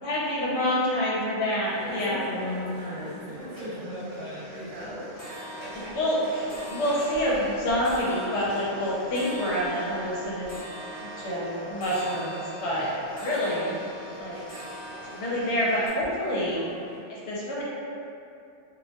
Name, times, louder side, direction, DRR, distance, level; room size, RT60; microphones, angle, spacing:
voice 1, 0.0-2.3 5.9-10.6 11.0-13.8 14.2-14.4 15.0-16.6 17.1-17.6, equal, 70° left, -6 dB, 0.8 m, -27 dB
sound 1, 1.5-1.6 1.9-2.5 2.9-3.2 3.5-15.9, equal, 20° right, 0.7 m, -42 dB
sound 2, 1.6-17.0, right 1 dB, 45° right, 0.9 m, -45 dB
voice 2, 1.8-5.7, left 1 dB, 80° right, -5 dB, 0.9 m, -37 dB
2.3 x 2.1 x 2.7 m, 2.6 s
omnidirectional pair, 1.3 m